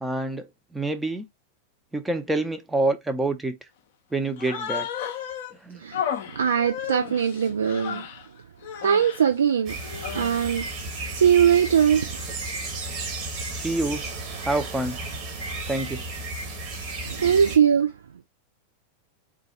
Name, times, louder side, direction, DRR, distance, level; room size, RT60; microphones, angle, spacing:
voice 1, 0.0-0.5 0.7-1.2 1.9-3.5 4.1-4.9 5.6-5.8 13.5-14.0 14.5-15.0 15.7-16.0, right 2 dB, 5° right, 0.6 m, -26 dB
Human voice, 4.4-5.5 5.9-8.3 8.6-9.2 9.8-10.6, left 8 dB, 55° left, 0.5 m, -33 dB
voice 2, 5.8-8.1 8.8-9.8 10.1-10.6 11.1-12.2 17.0-17.9, right 8 dB, 70° right, 0.4 m, -21 dB
sound 1, 9.7-17.6, right 2 dB, 35° right, 1.5 m, -33 dB
3.7 x 2.3 x 4.2 m
figure-of-eight pair, 90°, 0 cm